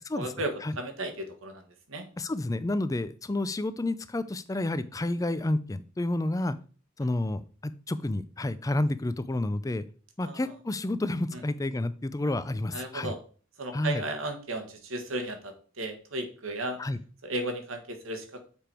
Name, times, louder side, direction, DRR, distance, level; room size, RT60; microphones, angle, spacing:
voice 1, 0.1-2.0 10.2-10.5 11.3-11.4 12.7-13.2 13.6-16.8 17.2-18.4, right 2 dB, 85° right, 5 dB, 1.6 m, -35 dB
voice 2, 2.2-6.6 7.0-9.8 10.2-13.1 13.7-14.0 16.8-17.0, left 2 dB, 15° left, 14 dB, 0.4 m, -30 dB
6.9 x 5.1 x 4.4 m, 0.41 s
head